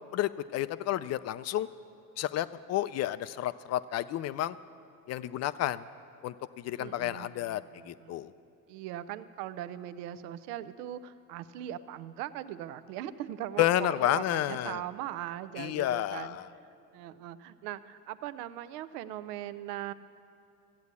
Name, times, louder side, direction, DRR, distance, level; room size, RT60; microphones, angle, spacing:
voice 1, 0.1-1.7 2.2-4.6 5.1-5.8 6.2-8.3 13.6-14.8 15.6-16.5, left 13 dB, 35° left, 15 dB, 0.4 m, -31 dB
voice 2, 6.8-8.1 8.7-16.4 16.9-19.9, right 12 dB, 80° right, 15 dB, 0.7 m, -40 dB
14.0 x 8.3 x 8.3 m, 2.6 s
supercardioid pair, 100°, 46 cm